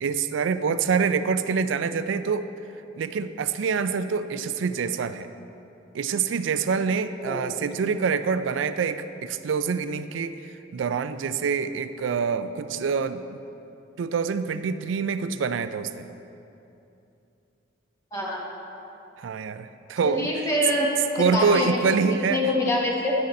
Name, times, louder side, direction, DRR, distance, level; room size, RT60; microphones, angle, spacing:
voice 1, 0.0-2.5 3.0-5.3 5.9-10.4 10.7-13.4 14.0-16.1 19.2-20.3 21.2-22.5, right 5 dB, 80° right, 12 dB, 0.4 m, -26 dB
voice 2, 18.1-18.5 20.0-20.9 21.2-21.8 22.3-23.1, left 1 dB, 15° left, -3 dB, 0.9 m, -25 dB
11.0 x 6.5 x 4.1 m, 2.8 s
head